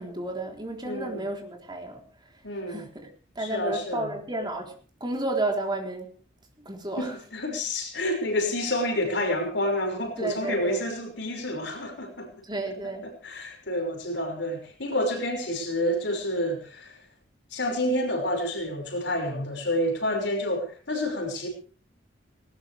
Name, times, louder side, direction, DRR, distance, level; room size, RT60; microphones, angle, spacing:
voice 1, 0.0-2.0 2.7-3.1 3.4-6.1 6.6-7.2 10.2-10.9 12.4-13.1, right 2 dB, 25° right, 2 dB, 3.9 m, -32 dB
voice 2, 0.8-1.3 2.4-2.9 3.4-4.1 7.0-12.3 13.2-17.0 17.5-21.5, left 1 dB, 65° left, 2 dB, 6.1 m, -29 dB
19.5 x 19.0 x 3.5 m, 0.39 s
head